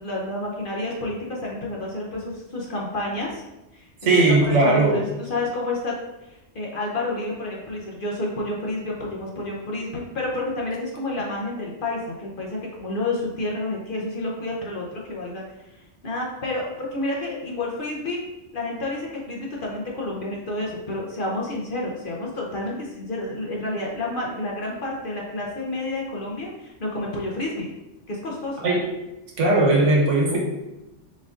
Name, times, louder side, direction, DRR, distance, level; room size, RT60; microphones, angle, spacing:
voice 1, 0.0-3.4 3.7-4.1 4.4-15.4 15.7-18.2 18.5-27.7 28.1-28.7, left 2 dB, 50° left, -2 dB, 0.7 m, -30 dB
voice 2, 4.0-5.0 28.6-28.8 29.4-30.4, right 2 dB, 75° right, -1 dB, 1.3 m, -18 dB
4.2 x 2.5 x 3.5 m, 0.97 s
omnidirectional pair, 1.3 m